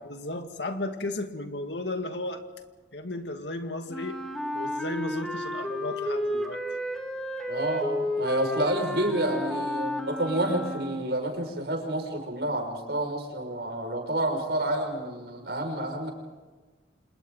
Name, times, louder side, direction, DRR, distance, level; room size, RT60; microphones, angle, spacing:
voice 1, 0.0-2.5 2.9-4.2 4.5-6.6, left 2 dB, 75° left, 6 dB, 2.0 m, -34 dB
Wind instrument woodwind instrument, 3.9-11.2, equal, 5° left, 2.2 m, -32 dB
voice 2, 7.5-16.1, right 1 dB, 65° right, 3 dB, 5.8 m, -29 dB
30.0 x 27.0 x 3.9 m, 1.3 s
head